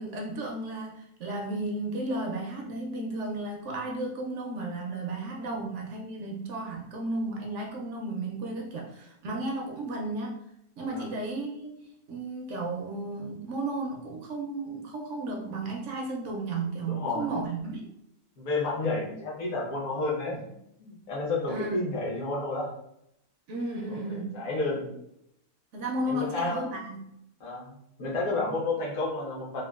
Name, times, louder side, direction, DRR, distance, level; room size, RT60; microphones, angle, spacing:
voice 1, 0.0-10.4 10.8-17.8 21.5-21.8 23.5-24.4 25.7-27.1, right 2 dB, 70° right, 0 dB, 0.7 m, -34 dB
voice 2, 16.9-17.3 18.4-20.5 20.8-22.7 23.9-24.9 26.0-26.7 27.4-29.6, left 3 dB, 60° left, -4 dB, 1.2 m, -31 dB
3.6 x 2.3 x 2.3 m, 0.79 s
omnidirectional pair, 1.7 m